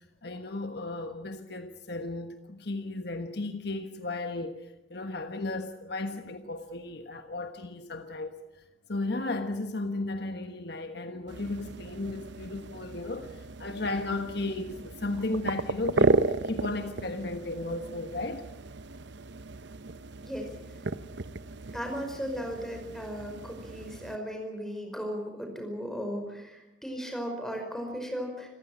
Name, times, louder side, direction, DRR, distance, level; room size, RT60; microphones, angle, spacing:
voice 1, 0.0-8.4 8.9-18.4, left 2 dB, 55° left, 1.3 m, -35 dB
sound 1, 11.3-24.2, right 3 dB, 60° right, 0.8 m, -34 dB
voice 2, 21.7-28.5, equal, ahead, 5.2 m, -36 dB
27.5 x 15.5 x 8.7 m
head